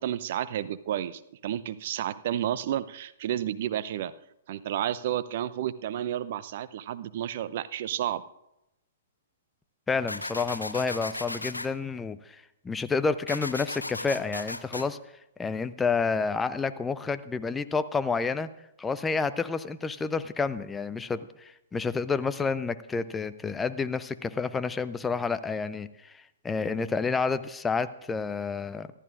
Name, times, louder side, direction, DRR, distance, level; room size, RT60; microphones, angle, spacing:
voice 1, 0.0-4.1 4.5-8.2, right 11 dB, 50° right, 16 dB, 0.6 m, -31 dB
voice 2, 9.9-15.0 15.4-18.5 18.8-28.9, left 4 dB, 10° left, 13 dB, 0.6 m, -29 dB
sound 1, 10.1-11.7 13.3-14.8, left 2 dB, 85° left, 0.7 m, -35 dB
25.5 x 12.5 x 2.5 m, 0.86 s
figure-of-eight pair, 115°, 0 cm